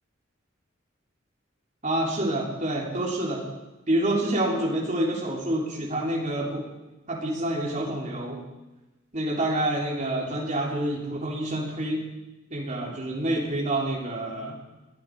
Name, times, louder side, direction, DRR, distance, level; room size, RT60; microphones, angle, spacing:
voice 1, 1.8-3.5 3.9-6.6 7.1-8.4 9.1-12.0 12.5-14.6, right 1 dB, 40° right, -2 dB, 3.5 m, -27 dB
21.0 x 12.0 x 4.9 m, 1.1 s
head